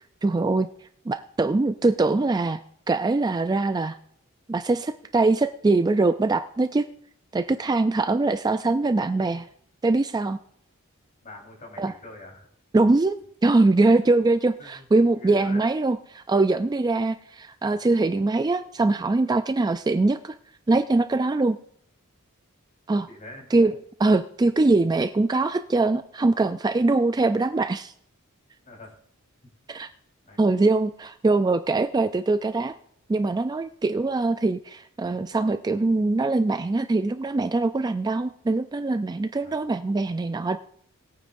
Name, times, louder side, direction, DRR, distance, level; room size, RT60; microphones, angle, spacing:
voice 1, 0.2-0.7 1.1-2.6 2.9-4.0 4.5-6.9 7.3-9.5 9.8-10.4 11.8-11.9 12.7-20.3 20.7-21.6 22.9-23.1 23.5-27.9 29.7-29.9 30.4-32.7 33.1-40.6, right 3 dB, 20° right, 10 dB, 0.3 m, -22 dB
voice 2, 11.2-12.5 13.8-14.0 14.6-14.9 15.1-15.6 23.1-23.5 28.7-28.9 30.2-30.5 39.4-39.6, left 1 dB, 40° left, -1 dB, 3.8 m, -44 dB
20.5 x 9.1 x 2.6 m, 0.65 s
head